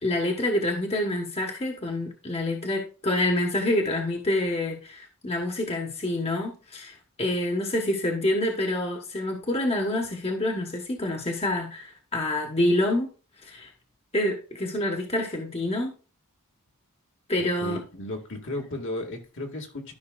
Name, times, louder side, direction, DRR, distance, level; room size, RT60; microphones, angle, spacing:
voice 1, 0.0-13.1 13.4-13.7 14.1-15.9 17.3-17.8, left 1 dB, 30° left, 2 dB, 1.3 m, -27 dB
voice 2, 17.6-19.9, left 1 dB, 60° left, 2 dB, 1.9 m, -34 dB
13.0 x 5.8 x 2.4 m, 0.35 s
head